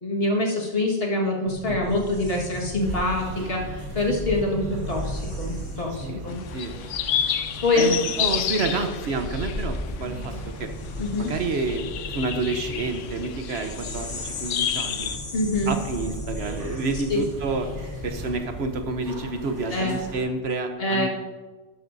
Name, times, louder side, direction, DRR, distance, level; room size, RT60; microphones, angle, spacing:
voice 1, 0.0-6.4 7.6-8.0 11.0-11.3 15.3-15.8 17.1-17.2 19.7-20.0 20.8-21.1, left 2 dB, 55° left, -2 dB, 2.0 m, -25 dB
sound 1, 1.5-19.0, left 2 dB, 25° left, 0.9 m, -37 dB
voice 2, 1.7-2.0 6.0-6.2 6.5-6.7 7.8-10.7 11.2-15.1 15.7-21.1, right 3 dB, 65° right, 6 dB, 1.1 m, -29 dB
sound 2, 2.8-20.3, right 2 dB, 80° right, 3.2 m, -39 dB
sound 3, 6.3-15.2, left 10 dB, 90° left, 1.0 m, -31 dB
12.0 x 12.0 x 2.7 m, 1.3 s
omnidirectional pair, 1.2 m